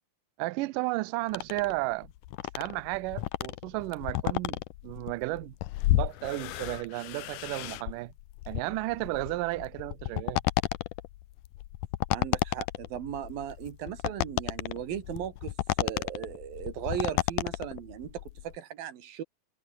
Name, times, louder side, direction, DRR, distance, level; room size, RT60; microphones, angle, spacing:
voice 1, 0.4-2.1 2.5-5.5 5.9-8.1 8.5-10.4, right 21 dB, 85° right, 1.9 m, -33 dB
sound 1, 1.3-18.6, left 16 dB, 80° left, 1.9 m, -32 dB
voice 2, 12.1-19.2, right 10 dB, 65° right, 3.6 m, -37 dB
omnidirectional pair, 4.6 m